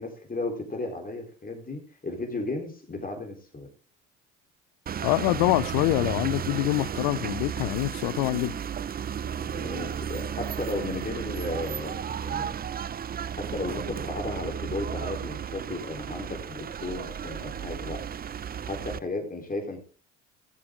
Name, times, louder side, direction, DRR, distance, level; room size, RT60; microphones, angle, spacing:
voice 1, 0.0-3.7 9.4-12.6 13.4-18.0 18.7-19.8, left 2 dB, 25° left, 3.8 m, -34 dB
sound 1, 4.9-19.0, right 8 dB, 25° right, 0.5 m, -34 dB
voice 2, 5.0-8.6, left 21 dB, 80° left, 0.5 m, -25 dB
15.0 x 7.3 x 3.7 m
supercardioid pair, 70°, 35 cm